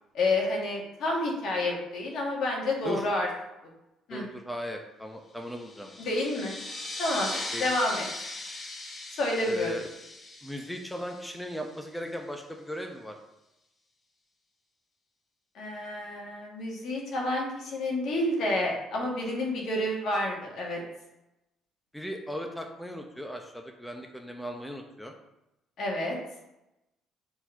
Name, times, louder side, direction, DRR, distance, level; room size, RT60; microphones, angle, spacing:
voice 1, 0.1-3.3 4.1-4.3 6.0-6.5 7.0-7.3 7.6-8.0 9.2-9.7 15.5-20.8 25.8-26.2, left 1 dB, 65° left, -2 dB, 2.0 m, -29 dB
voice 2, 4.1-5.9 7.5-7.7 9.4-9.9 10.4-13.2 21.9-25.1, equal, 5° left, 3 dB, 0.8 m, -37 dB
sound 1, 5.5-11.7, left 2 dB, 35° left, 1.4 m, -39 dB
4.5 x 4.4 x 5.7 m, 0.92 s
cardioid pair, 90°, 0 cm